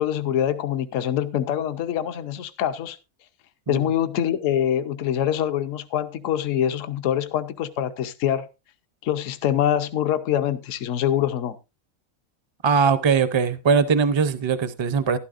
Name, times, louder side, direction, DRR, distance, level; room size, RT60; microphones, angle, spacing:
voice 1, 0.0-3.0 3.7-8.5 9.0-11.6, left 10 dB, 70° left, 1.1 m, -24 dB
voice 2, 12.6-15.2, right 5 dB, 30° right, 0.5 m, -20 dB
12.5 x 12.0 x 2.5 m
omnidirectional pair, 1.4 m